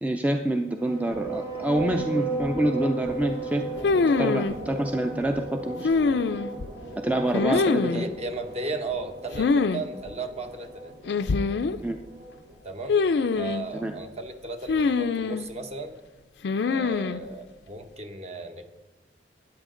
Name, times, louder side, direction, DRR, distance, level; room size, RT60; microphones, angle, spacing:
voice 1, 0.0-3.6 4.2-5.9 7.0-8.1 11.8-12.0 13.7-13.9, right 1 dB, 10° right, 5 dB, 0.4 m, -26 dB
sound 1, 0.7-12.6, right 3 dB, 85° right, 2.4 m, -36 dB
sound 2, 3.8-4.5 5.8-6.7 7.3-8.1 9.3-9.8 10.1-10.2 11.1-11.8 12.9-13.7 14.7-15.5 16.4-17.2, left 4 dB, 75° left, 0.4 m, -24 dB
voice 2, 7.4-10.9 12.6-13.0 13.3-15.9 16.7-18.6, right 2 dB, 40° right, 6 dB, 1.0 m, -35 dB
13.0 x 9.9 x 3.8 m, 1.1 s
head